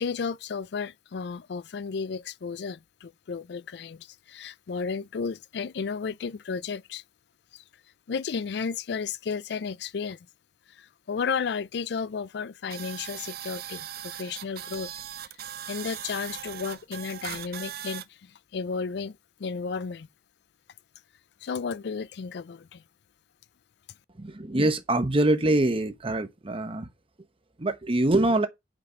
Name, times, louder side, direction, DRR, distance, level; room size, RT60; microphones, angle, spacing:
voice 1, 0.0-7.0 7.5-7.6 8.1-10.2 10.7-14.9 15.6-20.1 21.4-22.8, left 5 dB, 65° left, 0.4 m, -33 dB
sound 1, 12.7-18.0, right 10 dB, 60° right, 0.7 m, -39 dB
voice 2, 24.2-26.9 27.6-28.5, right 1 dB, 30° right, 0.9 m, -24 dB
8.2 x 5.1 x 5.1 m
head